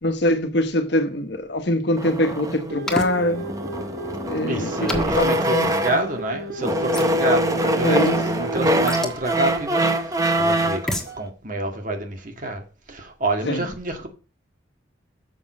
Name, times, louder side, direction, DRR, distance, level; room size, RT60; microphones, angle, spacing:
voice 1, 0.0-3.5 4.2-5.7 7.8-8.2 13.4-13.7, left 1 dB, 65° left, 1.3 m, -23 dB
sound 1, 2.0-6.2 6.6-10.9, right 1 dB, 20° right, 1.0 m, -23 dB
sound 2, 2.7-9.3 11.1-11.2, right 1 dB, 60° right, 1.5 m, -34 dB
sound 3, 2.9-3.1 4.9-5.3 6.9-7.1 8.9-9.2 10.9-11.1, left 1 dB, 5° left, 1.5 m, -27 dB
voice 2, 4.5-14.1, right 2 dB, 45° right, 2.0 m, -28 dB
7.2 x 6.3 x 6.2 m
head